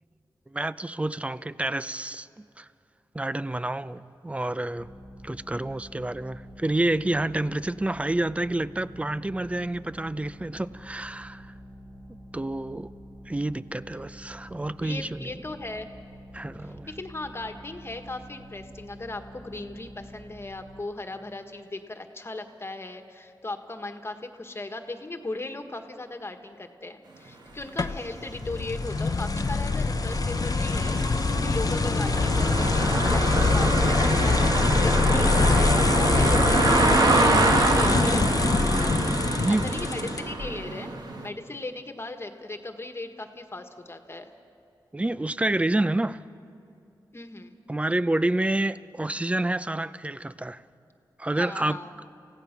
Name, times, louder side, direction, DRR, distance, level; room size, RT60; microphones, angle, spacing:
voice 1, 0.5-2.7 3.1-4.9 5.2-11.4 12.3-12.9 13.3-15.3 16.3-16.9 39.3-39.7 44.9-46.2 47.7-50.6 51.2-51.8, right 1 dB, 15° right, 0.6 m, -28 dB
sound 1, 4.8-20.8, equal, 30° right, 2.4 m, -46 dB
voice 2, 14.8-15.9 16.6-40.9 41.2-44.3 47.1-47.5 51.3-51.9, left 2 dB, 30° left, 1.6 m, -38 dB
sound 2, 27.8-40.5, left 4 dB, 50° left, 0.8 m, -24 dB
sound 3, 27.9-28.0 28.4-41.3, right 2 dB, 60° right, 1.8 m, -26 dB
29.0 x 16.0 x 6.0 m
cardioid pair, 60°, 8 cm